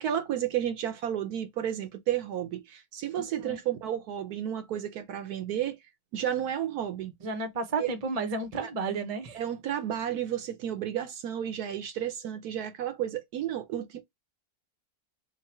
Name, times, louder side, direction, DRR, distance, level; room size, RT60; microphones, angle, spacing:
voice 1, 0.0-5.8 6.1-7.1 7.8-7.9 8.6-8.7 9.3-14.0, right 10 dB, 70° right, 1.1 m, -32 dB
voice 2, 3.2-3.6 7.2-9.4, right 3 dB, 30° right, 0.7 m, -32 dB
3.8 x 2.2 x 4.2 m
omnidirectional pair, 1.8 m